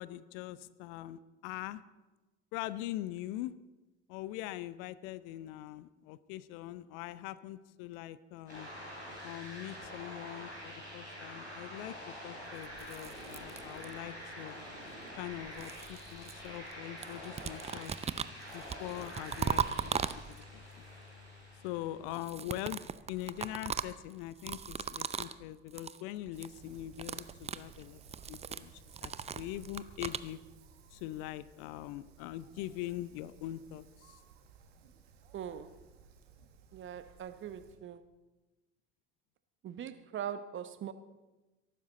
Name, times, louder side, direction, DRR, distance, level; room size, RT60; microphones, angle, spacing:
voice 1, 0.0-1.8 2.5-3.5 4.1-8.7 9.2-11.9 12.2-14.6 15.2-18.2 18.5-20.6 21.6-22.8 23.1-28.0 28.3-30.4 30.9-34.2, left 14 dB, 55° left, 0.7 m, -42 dB
sound 1, 8.5-22.2, equal, 85° left, 3.4 m, -47 dB
sound 2, 12.6-14.2 15.1-16.7 17.0-20.6 22.1-25.4 25.7-26.0 26.3-26.6 26.9-30.3, right 7 dB, 20° right, 0.6 m, -39 dB
Wind, 26.3-37.7, right 6 dB, 70° right, 1.7 m, -58 dB
voice 2, 35.3-35.7 36.7-38.0 39.6-40.9, right 9 dB, 35° right, 1.0 m, -41 dB
22.5 x 12.0 x 4.1 m
figure-of-eight pair, 60°, 33 cm